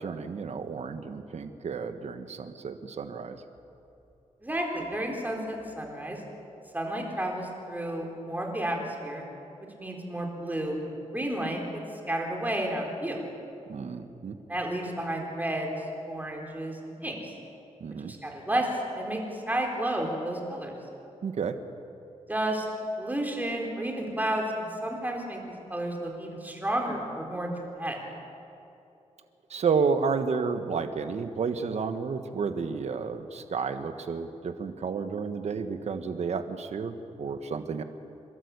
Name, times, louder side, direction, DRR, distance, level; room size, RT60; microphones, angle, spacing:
voice 1, 0.0-3.4 13.7-14.4 17.8-18.1 21.2-21.6 29.5-37.8, right 5 dB, 65° right, 9 dB, 1.4 m, -31 dB
voice 2, 4.4-6.2 6.7-9.2 9.8-10.8 11.1-11.8 12.1-13.2 14.5-17.3 18.0-18.7 18.9-20.7 22.3-22.7 23.0-25.4 25.7-27.5 27.8-28.0, right 1 dB, 15° right, 1 dB, 4.1 m, -31 dB
29.0 x 13.0 x 8.4 m, 2.8 s
wide cardioid pair, 100°, 12 cm